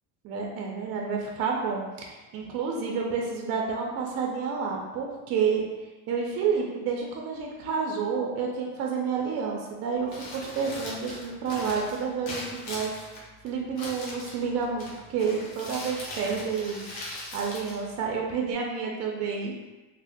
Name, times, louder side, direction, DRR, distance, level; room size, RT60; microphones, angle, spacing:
voice 1, 0.2-5.6 6.1-12.9 13.4-16.8 17.3-19.5, right 5 dB, 40° right, -1 dB, 0.4 m, -29 dB
Crumpling crinkling, 10.0-18.5, left 1 dB, 60° left, 0.9 m, -40 dB
3.5 x 2.0 x 2.5 m, 1.2 s
cardioid pair, 150°, 40 cm